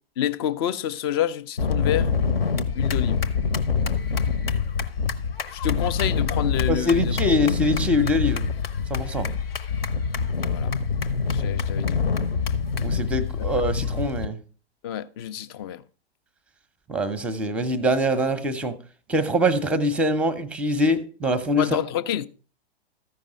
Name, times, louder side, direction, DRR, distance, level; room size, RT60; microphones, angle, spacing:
voice 1, 0.2-2.1 2.7-3.2 5.5-7.1 10.4-10.7 11.3-12.2 14.8-15.8 21.6-22.3, left 11 dB, 25° left, 0.4 m, -28 dB
sound 1, 1.6-14.3, left 5 dB, 65° left, 0.9 m, -25 dB
voice 2, 6.7-8.4 8.9-9.3 12.8-14.4 16.9-18.8 19.1-21.7, left 1 dB, 5° right, 0.7 m, -23 dB
14.0 x 5.4 x 5.0 m
figure-of-eight pair, 105°, 31 cm